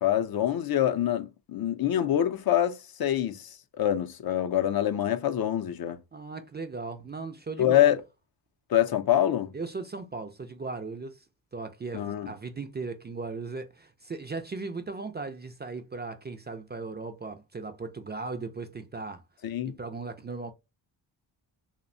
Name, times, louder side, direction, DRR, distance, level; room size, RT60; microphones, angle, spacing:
voice 1, 0.0-3.5 3.8-6.0 7.6-8.0 8.7-9.5 11.9-12.3 19.4-19.8, left 11 dB, 55° left, 0.5 m, -25 dB
voice 2, 6.1-7.9 9.5-11.2 11.5-20.5, right 4 dB, 25° right, 0.4 m, -37 dB
2.7 x 2.1 x 2.5 m
cardioid pair, 70°, 45 cm